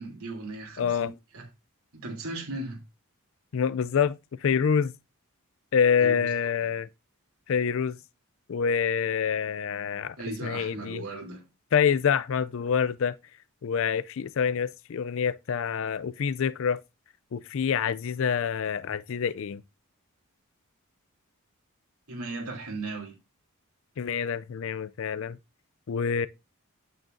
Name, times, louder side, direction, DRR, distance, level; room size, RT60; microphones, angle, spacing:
voice 1, 0.0-1.4 1.9-2.8 6.0-6.3 10.2-11.4 22.1-23.2, right 2 dB, 80° right, 3.1 m, -37 dB
voice 2, 0.8-1.1 3.5-4.9 5.7-6.9 7.5-8.0 8.5-10.2 10.4-11.0 11.7-13.2 13.6-16.8 17.3-19.6 24.0-25.4 25.9-26.3, left 7 dB, 60° left, 0.4 m, -26 dB
8.9 x 8.8 x 2.6 m
head